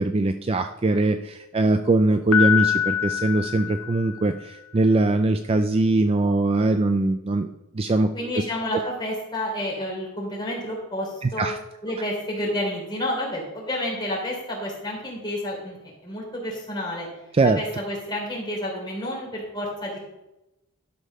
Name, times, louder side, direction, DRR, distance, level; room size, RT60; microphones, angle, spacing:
voice 1, 0.0-8.1 11.2-11.6 17.3-17.6, right 2 dB, 25° right, 8 dB, 0.3 m, -22 dB
Piano, 2.3-4.4, left 9 dB, 75° left, 0.7 m, -24 dB
voice 2, 8.1-11.5 11.8-17.1 17.5-20.0, left 1 dB, 20° left, -3 dB, 3.3 m, -30 dB
12.0 x 5.4 x 5.4 m, 0.93 s
head